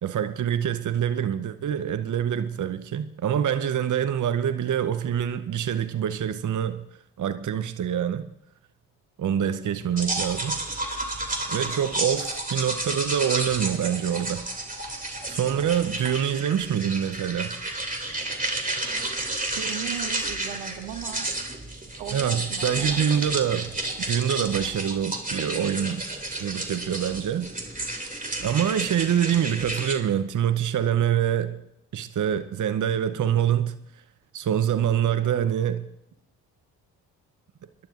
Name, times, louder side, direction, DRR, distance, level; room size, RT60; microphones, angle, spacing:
voice 1, 0.0-6.8 7.2-8.3 9.2-10.6 11.5-14.5 15.3-17.5 22.1-23.7 24.1-26.0 26.4-27.5 28.4-31.6 31.9-33.8 34.3-35.8, right 9 dB, 40° right, 0.8 m, -25 dB
sound 1, 10.0-29.9, right 2 dB, 20° right, 2.7 m, -31 dB
voice 2, 19.5-21.3 22.0-23.1, right 10 dB, 80° right, 1.4 m, -37 dB
27.0 x 11.5 x 2.6 m
hypercardioid pair, 45°, 44 cm